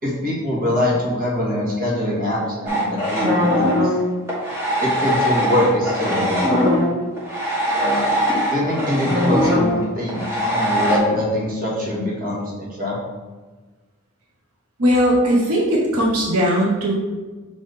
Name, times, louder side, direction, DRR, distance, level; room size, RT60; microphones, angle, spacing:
voice 1, 0.0-3.9 4.8-6.7 8.5-13.0, left 1 dB, 40° right, -5 dB, 1.9 m, -23 dB
sound 1, 2.7-11.0, equal, 10° right, 1.3 m, -20 dB
voice 2, 14.8-16.9, equal, 90° right, -2 dB, 1.1 m, -18 dB
6.4 x 3.5 x 4.1 m, 1.3 s
head